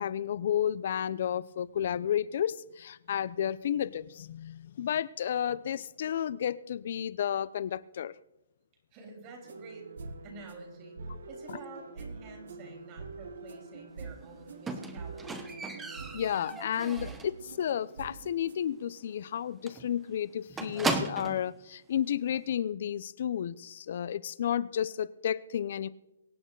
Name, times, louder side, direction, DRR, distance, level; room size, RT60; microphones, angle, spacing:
voice 1, 0.0-8.1 11.5-11.6 16.1-25.9, left 9 dB, 45° left, 18 dB, 0.6 m, -32 dB
voice 2, 8.9-9.9 10.2-11.0 11.3-15.5, right 3 dB, 25° right, 3 dB, 3.4 m, -49 dB
sound 1, 9.4-18.7, right 4 dB, 65° right, 1.5 m, -45 dB
Squeak, 14.7-17.4 17.8-18.2 18.4-18.5 18.9-19.0 19.3-19.4 19.7-21.5 22.3-22.4, right 3 dB, 5° right, 1.0 m, -36 dB
23.5 x 8.9 x 3.9 m, 0.89 s
hypercardioid pair, 165°, 0 cm